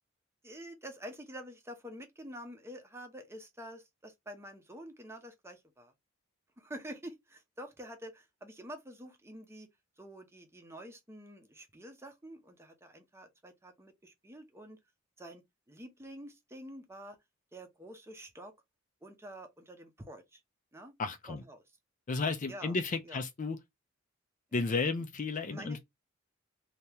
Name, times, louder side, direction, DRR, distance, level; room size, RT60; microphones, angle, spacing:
voice 1, 0.4-5.9 6.6-9.7 10.0-14.8 15.2-15.4 15.7-17.2 17.5-18.5 19.0-20.4 20.7-20.9 21.3-21.6 22.5-22.7 23.1-23.2 24.5-24.7 25.5-25.8, equal, 15° right, 0.7 m, -48 dB
voice 2, 21.0-21.4 22.1-23.6 24.5-25.8, left 4 dB, 40° left, 0.5 m, -33 dB
2.9 x 2.8 x 3.4 m
head